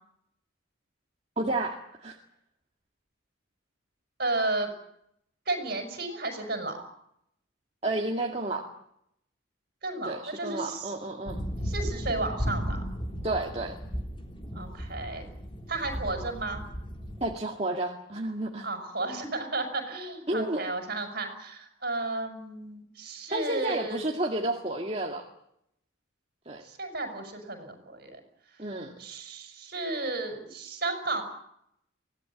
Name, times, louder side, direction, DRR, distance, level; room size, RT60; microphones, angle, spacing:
voice 1, 1.4-2.2 7.8-8.6 10.0-11.4 13.2-13.8 17.2-18.7 20.3-20.7 23.3-25.2 26.5-26.6 28.6-28.9, right 2 dB, 30° right, 1 dB, 2.1 m, -31 dB
voice 2, 4.2-4.7 5.5-6.8 9.8-10.9 11.6-12.8 14.5-15.3 15.7-16.6 18.6-24.1 26.6-28.2 29.0-31.2, right 2 dB, 50° right, 6 dB, 6.2 m, -33 dB
sound 1, 11.3-17.3, equal, 25° left, 3.3 m, -35 dB
24.0 x 18.0 x 9.1 m, 0.76 s
head